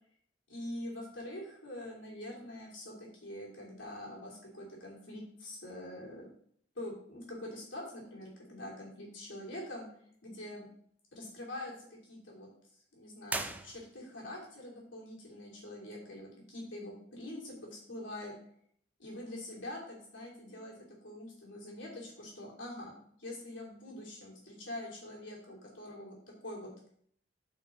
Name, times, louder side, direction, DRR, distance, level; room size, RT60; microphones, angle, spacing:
voice 1, 0.5-6.3 6.7-9.9 10.2-10.7 11.1-12.5 12.9-18.3 19.0-22.9 23.2-26.7, left 1 dB, 80° left, -3 dB, 2.8 m, -44 dB
sound 1, 13.2-14.3, right 2 dB, 10° right, 0.3 m, -39 dB
7.6 x 5.4 x 3.7 m, 0.63 s
head